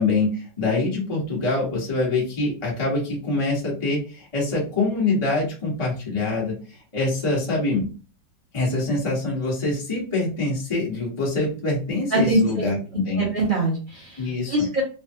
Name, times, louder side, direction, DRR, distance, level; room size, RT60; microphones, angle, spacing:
voice 1, 0.0-6.5 6.9-7.8 8.5-13.2 14.2-14.5, left 2 dB, 20° left, -5 dB, 1.0 m, -24 dB
voice 2, 12.1-12.7 13.2-14.8, right 1 dB, 80° right, -3 dB, 0.4 m, -23 dB
3.3 x 2.2 x 2.7 m, 0.36 s
omnidirectional pair, 2.0 m